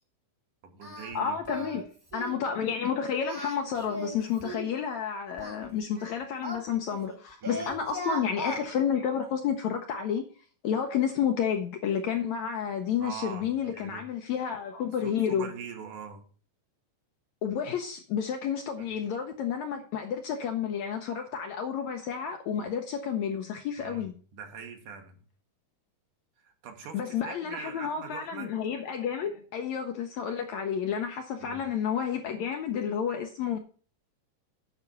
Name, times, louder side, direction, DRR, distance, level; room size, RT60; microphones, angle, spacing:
voice 1, 0.6-1.7 7.4-7.7 13.0-14.0 15.0-16.3 18.8-18.9 23.8-25.2 26.4-28.6 31.4-31.6, right 6 dB, 70° right, 2.8 m, -43 dB
Singing, 0.8-1.1 1.4-1.8 2.1-2.4 3.2-4.7 5.4-7.2 7.4-8.6, equal, 10° right, 1.1 m, -38 dB
voice 2, 1.1-1.9 2.1-10.2 10.6-15.5 17.4-24.1 26.9-33.6, left 7 dB, 75° left, 1.7 m, -30 dB
8.9 x 6.0 x 6.8 m
omnidirectional pair, 4.0 m